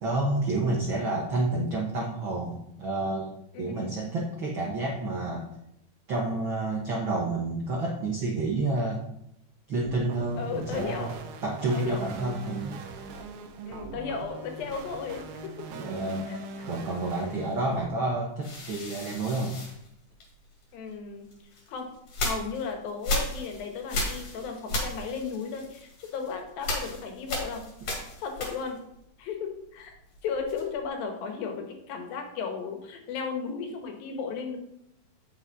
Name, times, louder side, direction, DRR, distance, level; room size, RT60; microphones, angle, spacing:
voice 1, 0.0-3.3 3.6-5.5 6.1-9.0 9.7-11.1 11.4-12.8 15.7-16.3 16.7-19.6, right 2 dB, 70° right, -2 dB, 1.1 m, -29 dB
voice 2, 3.5-3.9 10.4-11.2 11.7-12.1 13.7-15.7 16.3-16.4 20.7-21.3 21.7-21.9 22.2-27.6 28.2-28.8 29.2-29.9 30.2-34.6, left 5 dB, 80° left, 4 dB, 3.0 m, -35 dB
sound 1, 9.8-17.9, right 3 dB, 85° right, 2.8 m, -41 dB
sound 2, 18.4-20.6 21.3-28.9 29.2-30.9, left 1 dB, 50° left, 2.9 m, -35 dB
8.6 x 6.9 x 4.0 m, 0.79 s
omnidirectional pair, 4.1 m